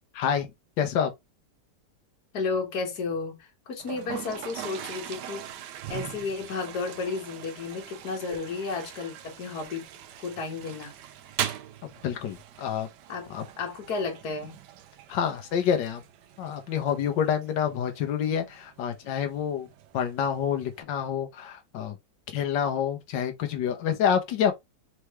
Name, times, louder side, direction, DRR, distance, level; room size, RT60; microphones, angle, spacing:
voice 1, 0.1-0.5 0.8-1.1 11.8-12.9 13.3-13.4 15.1-16.0 16.4-19.7 19.9-22.0 22.3-24.5, left 8 dB, 85° left, 1.5 m, -27 dB
voice 2, 2.3-5.4 5.9-9.8 10.2-10.9 13.1-13.3 13.6-14.5, left 4 dB, 60° left, 1.8 m, -32 dB
Toilet flush, 3.8-20.8, right 10 dB, 75° right, 1.2 m, -41 dB
4.6 x 3.2 x 3.0 m
omnidirectional pair, 1.9 m